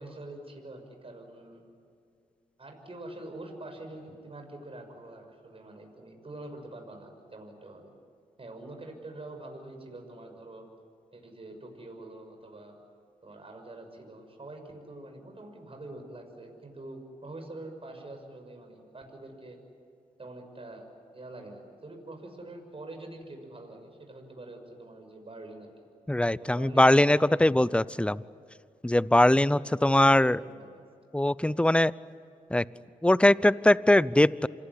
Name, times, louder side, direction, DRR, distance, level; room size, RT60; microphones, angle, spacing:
voice 1, 0.0-1.6 2.6-7.9 8.4-10.7 11.1-12.8 13.2-19.6 20.2-20.9 21.1-25.7 26.4-27.8 29.5-30.8, right 2 dB, 40° right, 4 dB, 6.3 m, -45 dB
voice 2, 26.1-28.2 28.8-30.4 31.1-31.9 32.5-32.6 33.0-34.5, left 1 dB, 5° left, 19 dB, 0.7 m, -21 dB
27.0 x 20.5 x 9.9 m, 2.4 s
supercardioid pair, 45°, 16 cm